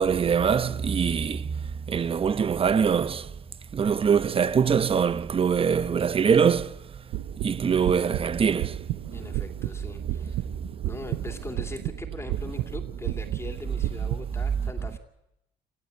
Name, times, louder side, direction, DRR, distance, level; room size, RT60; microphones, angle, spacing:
voice 1, 0.0-1.6 1.9-3.3 3.7-6.7 7.4-8.8, right 6 dB, 35° right, 1.0 m, -23 dB
sound 1, 7.1-14.2, right 14 dB, 80° right, 0.8 m, -33 dB
voice 2, 9.1-10.5 10.8-15.0, left 2 dB, 15° left, 2.7 m, -40 dB
27.5 x 14.5 x 9.5 m
cardioid pair, 110°, 17 cm